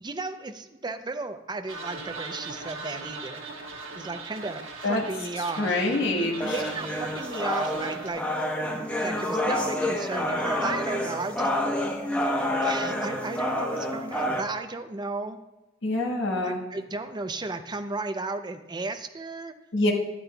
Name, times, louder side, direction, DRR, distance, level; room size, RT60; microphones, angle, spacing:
voice 1, 0.0-3.4 3.9-5.8 6.1-8.2 9.0-11.5 12.6-15.4 16.4-19.5, right 3 dB, 20° right, 8 dB, 0.5 m, -34 dB
sound 1, 1.7-8.1, right 3 dB, 75° right, 1.3 m, -39 dB
voice 2, 5.6-6.6 15.8-16.6 19.7-19.9, left 2 dB, 60° left, -1 dB, 1.5 m, -25 dB
sound 2, 6.4-14.4, left 1 dB, 5° left, 0.9 m, -28 dB
13.5 x 8.8 x 2.3 m, 1.0 s
head